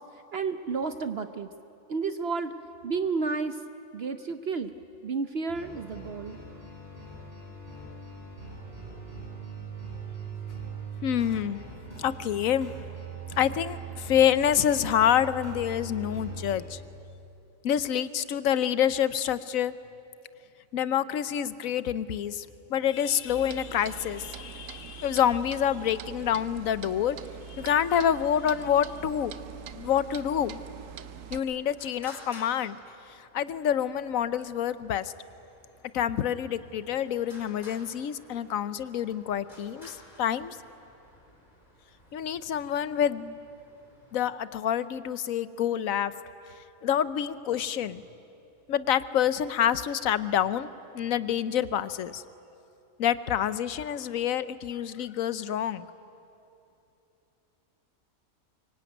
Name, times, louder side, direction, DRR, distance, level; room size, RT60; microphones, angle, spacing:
voice 1, 0.3-1.5 1.9-2.5 2.8-3.5 3.9-4.7 5.0-6.4, right 4 dB, 55° right, 10 dB, 0.9 m, -31 dB
sound 1, 5.5-16.6, right 4 dB, 30° right, 7.0 m, -41 dB
voice 2, 11.0-11.6 12.0-12.7 13.3-16.8 17.6-19.8 20.7-27.2 27.5-29.3 29.7-30.6 31.3-32.8 33.3-35.1 35.9-40.6 42.1-43.4 44.1-46.1 46.8-48.0 48.7-50.7 50.9-52.2 53.0-55.9, left 9 dB, 75° left, 15 dB, 1.2 m, -27 dB
Clock, 23.3-31.4, right 8 dB, 75° right, 1.2 m, -43 dB
Traffic noise roadway noise, 28.8-44.3, left 1 dB, 35° left, 4.3 m, -55 dB
24.0 x 23.5 x 9.2 m, 2.8 s
omnidirectional pair, 1.4 m